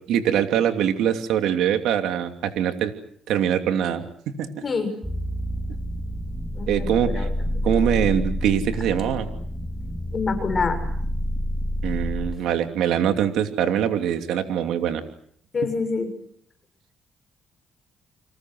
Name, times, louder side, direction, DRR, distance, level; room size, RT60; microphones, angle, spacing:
voice 1, 0.1-2.9 3.3-4.5 6.7-7.3 7.6-9.3 11.8-15.0, right 9 dB, 85° right, 6 dB, 2.8 m, -23 dB
voice 2, 4.6-4.9 6.5-7.3 10.1-10.8 15.5-16.1, left 4 dB, 40° left, 7 dB, 6.5 m, -26 dB
sound 1, 5.0-12.4, equal, 5° right, 3.0 m, -28 dB
29.5 x 26.0 x 6.3 m, 0.65 s
cardioid pair, 90°, 0 cm